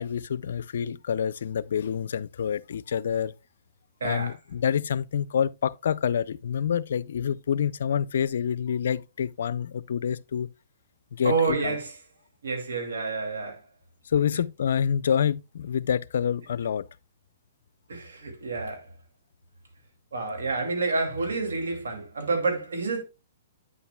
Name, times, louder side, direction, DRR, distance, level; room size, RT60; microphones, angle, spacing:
voice 1, 0.0-3.3 4.0-10.5 11.1-11.8 14.1-16.9, left 8 dB, 70° left, 0.4 m, -27 dB
voice 2, 4.0-4.3 11.2-11.9 12.4-13.6 17.9-18.8 20.1-23.0, right 4 dB, 85° right, 2.4 m, -28 dB
8.7 x 7.0 x 2.2 m
hypercardioid pair, 145°, 0 cm